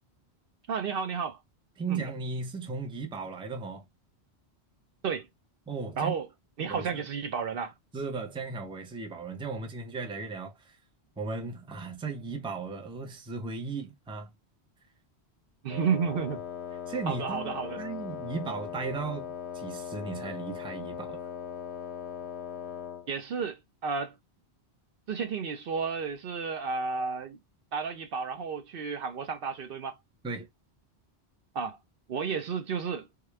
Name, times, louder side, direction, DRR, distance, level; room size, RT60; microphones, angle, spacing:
voice 1, 0.7-1.4 1.9-2.0 5.0-5.3 6.0-6.3 6.6-7.7 15.6-16.4 17.1-17.8 23.1-24.1 25.1-27.4 27.7-30.0 31.5-31.8 32.1-33.1, right 6 dB, 60° right, 0.7 m, -32 dB
voice 2, 1.8-3.8 5.7-6.1 6.7-7.0 7.9-10.8 11.2-14.3 16.9-21.2 30.2-30.5, right 4 dB, 5° right, 0.5 m, -36 dB
Wind instrument woodwind instrument, 15.7-23.1, left 8 dB, 80° left, 0.8 m, -39 dB
3.6 x 2.2 x 3.2 m
omnidirectional pair, 1.1 m